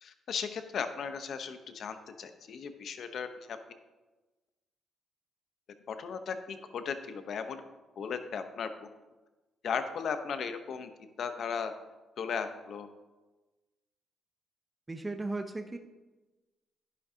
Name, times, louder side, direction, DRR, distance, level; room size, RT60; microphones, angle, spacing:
voice 1, 0.0-3.6 5.9-7.6 8.0-8.9 9.6-10.9 11.2-11.7 12.2-12.9, left 6 dB, 60° left, 8 dB, 0.9 m, -36 dB
voice 2, 14.9-15.8, right 2 dB, 20° right, 6 dB, 0.7 m, -36 dB
11.0 x 10.0 x 2.8 m, 1.2 s
cardioid pair, 90°, 0 cm